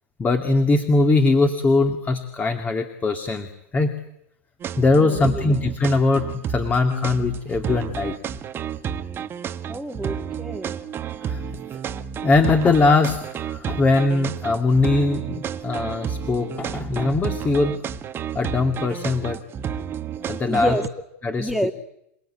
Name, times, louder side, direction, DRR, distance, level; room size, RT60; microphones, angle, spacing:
voice 1, 0.2-3.9 4.8-8.2 11.2-11.4 12.2-17.8 18.3-19.4 20.3-20.8 21.2-21.5, left 3 dB, 20° left, 6 dB, 2.2 m, -21 dB
sound 1, 4.6-20.9, right 8 dB, 25° right, 1.5 m, -31 dB
voice 2, 4.9-5.4 9.7-10.7 20.5-20.8 21.4-21.7, right 1 dB, ahead, 7 dB, 2.1 m, -28 dB
28.0 x 19.0 x 8.7 m, 0.80 s
hypercardioid pair, 115°, 8 cm